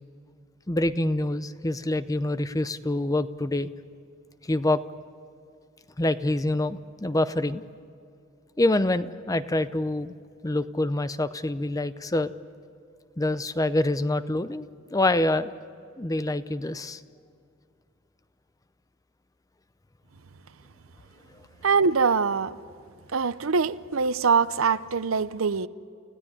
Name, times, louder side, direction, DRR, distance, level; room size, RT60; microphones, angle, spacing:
voice 1, 0.7-3.7 4.4-4.8 6.0-7.6 8.6-10.1 10.4-12.3 13.2-15.5 16.0-17.0, left 1 dB, 15° left, 0.6 m, -26 dB
voice 2, 21.6-22.6 23.1-25.7, right 5 dB, 75° right, 0.7 m, -23 dB
30.0 x 16.0 x 9.9 m
head